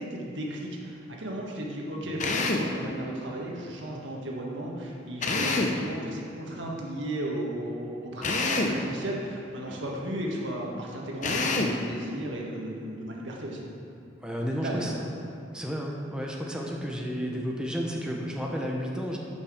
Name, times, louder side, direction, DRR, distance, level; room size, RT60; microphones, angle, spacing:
voice 1, 0.0-13.7 14.4-15.1, right 1 dB, 80° right, -2 dB, 1.6 m, -35 dB
Drill, 2.2-2.7 5.2-5.8 8.2-8.8 11.2-11.8, left 3 dB, 40° left, 0.8 m, -26 dB
voice 2, 14.2-14.9 15.5-19.2, equal, 5° right, -2 dB, 0.9 m, -32 dB
13.0 x 5.8 x 5.0 m, 2.8 s
head